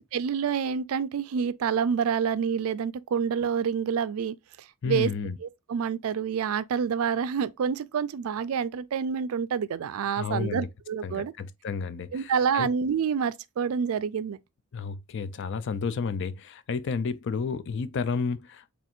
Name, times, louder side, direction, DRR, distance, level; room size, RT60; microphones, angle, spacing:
voice 1, 0.0-4.4 4.8-5.1 5.4-11.3 12.1-14.4, right 7 dB, 75° right, 0.4 m, -28 dB
voice 2, 4.8-5.4 10.2-10.7 11.0-12.7 14.7-18.7, left 5 dB, 55° left, 0.4 m, -31 dB
4.3 x 3.4 x 2.4 m
head